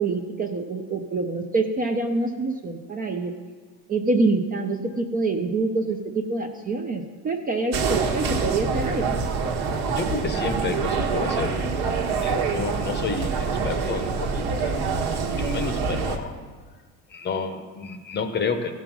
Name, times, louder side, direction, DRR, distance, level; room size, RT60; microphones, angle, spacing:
voice 1, 0.0-3.3 3.9-9.2, right 3 dB, 20° right, 4 dB, 0.5 m, -26 dB
sound 1, 7.7-16.2, right 5 dB, 65° right, 1.4 m, -25 dB
voice 2, 9.9-11.7 12.0-16.4 17.1-18.7, left 5 dB, 25° left, 8 dB, 0.7 m, -31 dB
15.5 x 5.5 x 6.0 m, 1.5 s
cardioid pair, 155°, 40 cm